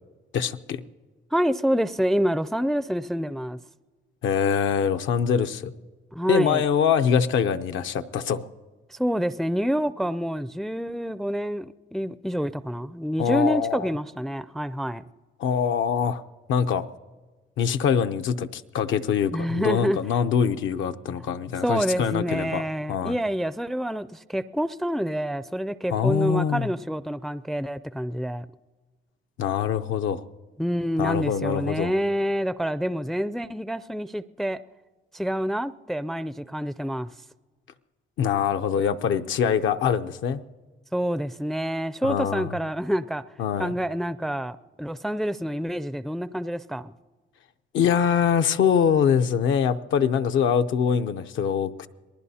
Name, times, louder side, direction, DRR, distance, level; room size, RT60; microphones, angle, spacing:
voice 1, 0.3-0.8 4.2-5.7 6.3-8.5 13.2-13.9 15.4-16.2 16.5-16.9 17.6-22.6 22.9-23.1 25.9-26.7 29.4-30.2 31.0-31.9 38.2-40.4 42.0-42.5 43.4-43.7 47.7-51.9, left 7 dB, 75° left, 8 dB, 0.7 m, -24 dB
voice 2, 1.3-3.6 6.1-6.6 8.9-15.0 19.3-20.0 21.6-28.5 30.6-34.6 35.1-37.1 40.9-43.2 43.6-46.9, equal, ahead, 14 dB, 0.4 m, -27 dB
27.0 x 19.5 x 2.8 m, 1.3 s
cardioid pair, 90°, 20 cm